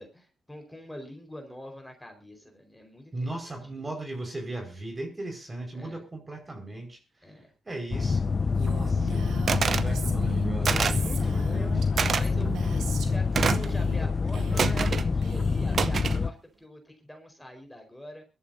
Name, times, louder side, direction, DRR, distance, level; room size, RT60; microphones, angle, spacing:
voice 1, 0.0-3.8 5.7-6.0 7.2-7.5 10.6-11.8 12.1-18.2, equal, 10° left, 3 dB, 4.6 m, -45 dB
voice 2, 3.1-7.0 7.6-8.2 8.5-11.7, right 2 dB, 30° right, 3 dB, 5.0 m, -38 dB
sound 1, 7.9-16.3, left 4 dB, 40° left, 0.6 m, -26 dB
Female speech woman speaking, 8.6-13.2 13.5-14.0 14.3-14.9 15.2-15.9, right 8 dB, 90° right, 1.9 m, -39 dB
sound 2, 9.5-9.9 10.6-11.1 12.0-12.2 13.3-13.7 14.6-15.1 15.7-16.2, right 6 dB, 60° right, 0.8 m, -26 dB
23.5 x 13.0 x 2.7 m, 0.28 s
cardioid pair, 65°, 0 cm